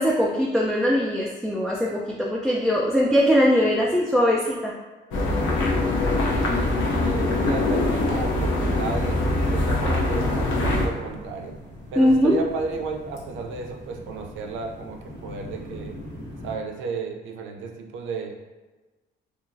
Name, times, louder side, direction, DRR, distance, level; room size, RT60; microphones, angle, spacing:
voice 1, 0.0-4.7 12.0-12.4, equal, ahead, -4 dB, 0.3 m, -21 dB
sound 1, 5.1-10.9, left 2 dB, 85° left, 0.6 m, -23 dB
voice 2, 6.3-11.6 11.9-16.0 16.4-18.3, right 4 dB, 80° right, 4 dB, 0.4 m, -33 dB
sound 2, 7.3-16.5, equal, 65° left, 1.1 m, -41 dB
2.7 x 2.3 x 2.5 m, 1.2 s
cardioid pair, 90°, 20 cm